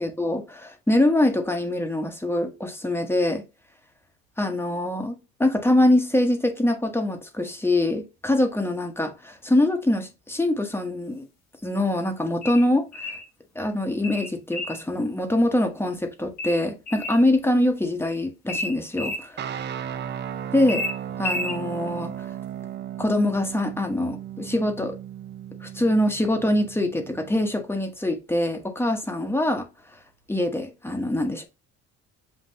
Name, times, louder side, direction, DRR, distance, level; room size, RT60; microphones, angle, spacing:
voice 1, 0.0-3.4 4.4-11.3 11.6-13.1 13.5-19.7 20.5-20.8 21.2-22.3 23.0-25.0 25.6-29.7 30.3-31.5, left 1 dB, 10° left, 1.0 m, -24 dB
sound 1, 12.4-13.3 14.0-14.8 16.4-17.2 18.5-19.2 20.7-21.6, left 2 dB, 60° left, 1.5 m, -31 dB
sound 2, 19.4-27.6, right 10 dB, 35° right, 0.5 m, -36 dB
7.5 x 2.6 x 2.7 m
cardioid pair, 95°, 30 cm